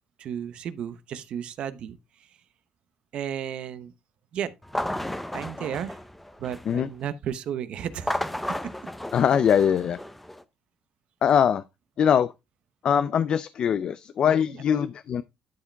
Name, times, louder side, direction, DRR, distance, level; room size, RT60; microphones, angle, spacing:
voice 1, 0.2-2.0 3.1-3.9 4.3-4.5 5.3-6.0 6.4-8.2 8.6-8.7 14.5-14.6, right 9 dB, 60° right, 1.0 m, -33 dB
sound 1, 4.6-6.8 7.9-10.4, left 1 dB, 5° left, 0.6 m, -33 dB
voice 2, 9.1-10.0 11.2-11.6 12.0-12.3 12.8-15.2, left 8 dB, 45° left, 0.4 m, -22 dB
12.0 x 4.9 x 3.4 m
cardioid pair, 155°, 2 cm